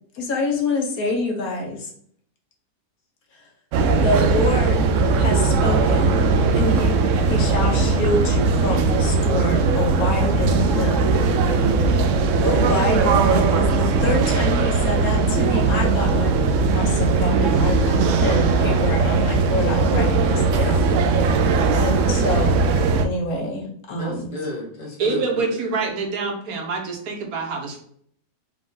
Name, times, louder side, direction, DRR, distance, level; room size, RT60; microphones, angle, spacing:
voice 1, 0.1-1.9 3.3-3.4 4.0-4.9 5.2-7.0 7.2-11.3 12.4-16.3 16.7-22.7 23.0-24.3, left 1 dB, 65° left, 1 dB, 1.2 m, -26 dB
sound 1, 3.7-23.0, right 4 dB, 80° right, 0.6 m, -19 dB
voice 2, 11.6-12.1 24.0-25.4, left 1 dB, 85° left, -2 dB, 2.2 m, -32 dB
voice 3, 25.0-27.8, right 4 dB, 60° right, 2 dB, 1.3 m, -26 dB
5.1 x 2.4 x 3.7 m, 0.62 s
omnidirectional pair, 1.8 m